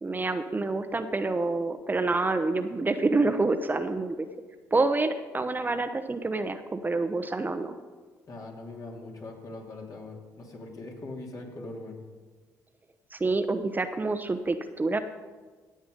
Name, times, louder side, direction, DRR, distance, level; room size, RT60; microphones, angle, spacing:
voice 1, 0.0-4.3 4.7-7.7 13.1-15.0, right 3 dB, 25° right, 8 dB, 0.9 m, -27 dB
voice 2, 8.3-11.9, left 2 dB, 50° left, 0 dB, 3.0 m, -41 dB
17.0 x 7.8 x 5.3 m, 1.4 s
supercardioid pair, 60°, 8 cm